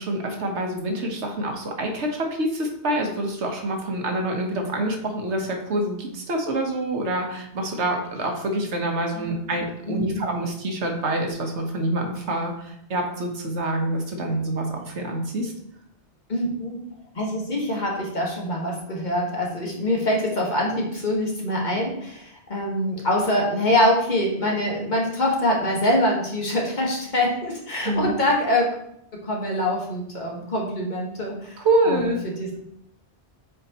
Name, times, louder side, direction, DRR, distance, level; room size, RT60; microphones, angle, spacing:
voice 1, 0.0-15.5 27.8-28.1 31.6-32.2, right 1 dB, 80° right, 2 dB, 1.4 m, -26 dB
voice 2, 9.1-9.6 9.9-10.2 16.3-16.8 17.1-28.7 29.1-31.6 31.9-32.5, left 1 dB, 45° left, -2 dB, 1.5 m, -24 dB
7.5 x 4.5 x 2.9 m, 0.75 s
omnidirectional pair, 1.1 m